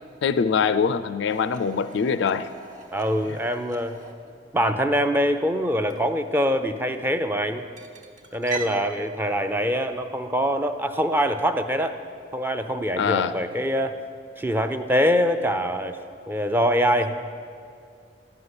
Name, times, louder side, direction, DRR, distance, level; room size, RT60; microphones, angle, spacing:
voice 1, 0.2-2.5 3.3-3.4 13.0-13.4, left 6 dB, 65° left, 12 dB, 0.4 m, -23 dB
sound 1, 1.3-8.8, right 5 dB, 45° right, 1.2 m, -42 dB
voice 2, 2.9-4.0 4.5-7.7 8.3-12.0 12.3-14.0 14.4-16.0 16.3-17.1, equal, 10° right, 7 dB, 0.6 m, -24 dB
13.0 x 6.9 x 9.7 m, 2.4 s
head